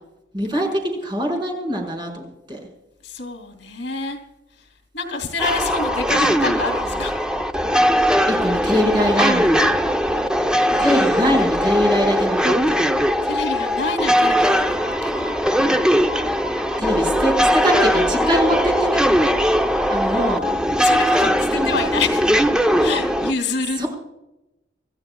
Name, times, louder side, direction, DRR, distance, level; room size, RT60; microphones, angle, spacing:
voice 1, 0.3-2.6 8.2-9.7 10.8-12.8 16.8-19.0 19.9-20.4 21.6-21.7 23.8-23.9, equal, 25° right, 0 dB, 5.1 m, -22 dB
voice 2, 3.0-4.2 4.6-4.7 4.9-7.1 10.7-11.6 13.2-15.3 16.8-17.4 20.0-22.3 22.8-23.9, left 3 dB, 80° left, 6 dB, 2.8 m, -28 dB
sound 1, 5.4-23.3, equal, 5° right, 0.8 m, -19 dB
27.0 x 14.5 x 2.4 m, 0.95 s
head